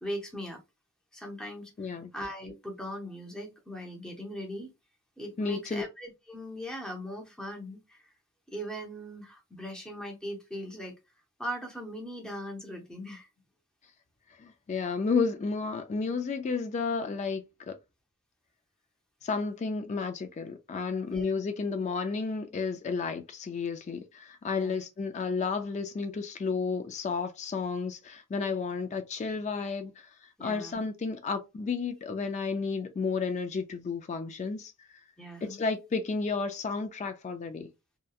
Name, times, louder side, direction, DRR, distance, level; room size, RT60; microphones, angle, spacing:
voice 1, 0.0-0.6 1.1-4.7 5.2-8.0 8.5-10.9 11.4-13.3 21.1-21.3 24.5-24.8 30.4-30.8 35.2-35.6, equal, 5° left, 0.7 m, -39 dB
voice 2, 1.8-2.1 5.4-5.8 14.4-17.7 19.2-30.1 30.4-34.7 35.4-37.7, left 4 dB, 30° left, 0.3 m, -32 dB
2.8 x 2.1 x 2.3 m
head